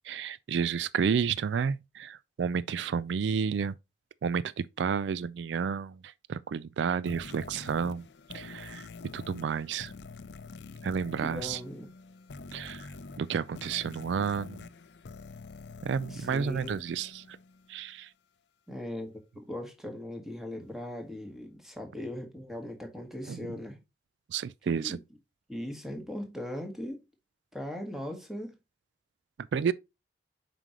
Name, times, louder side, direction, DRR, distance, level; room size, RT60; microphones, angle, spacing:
voice 1, 0.0-3.7 4.2-8.0 8.3-8.9 9.1-9.9 10.8-11.6 12.5-12.9 13.2-14.6 15.8-17.4 17.7-18.1 23.3-23.4 24.3-25.0 29.5-29.7, right 6 dB, 85° right, 0.3 m, -31 dB
sound 1, 7.1-17.8, left 4 dB, 75° left, 0.5 m, -46 dB
voice 2, 11.2-11.9 16.1-16.9 18.7-23.8 24.7-25.0 25.5-27.0 27.5-28.6, left 1 dB, ahead, 1.7 m, -39 dB
7.4 x 5.1 x 2.9 m
head